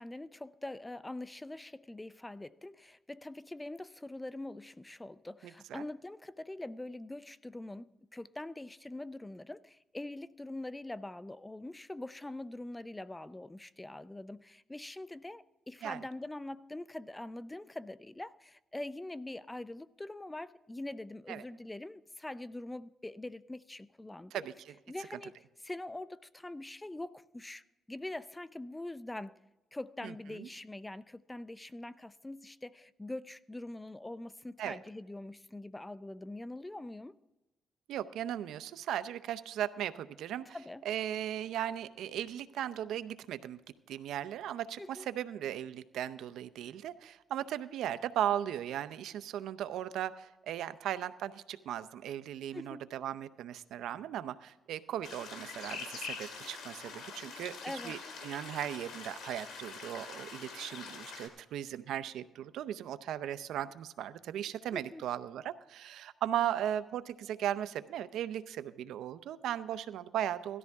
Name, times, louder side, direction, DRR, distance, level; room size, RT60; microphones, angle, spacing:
voice 1, 0.0-24.4 24.9-25.4 25.6-29.4 29.7-37.2 40.5-40.9 44.8-45.1 52.5-52.9 57.6-58.2 64.7-65.0, left 2 dB, 10° left, 0.4 m, -43 dB
voice 2, 5.4-5.8 15.8-16.0 21.3-21.4 24.3-24.8 30.0-30.5 34.6-34.8 37.9-40.5 40.8-43.6 43.9-57.6 57.8-70.6, right 11 dB, 80° right, 0.6 m, -37 dB
sound 1, 55.0-61.3, left 5 dB, 70° left, 2.7 m, -44 dB
18.0 x 13.5 x 3.5 m
cardioid pair, 90°, 0 cm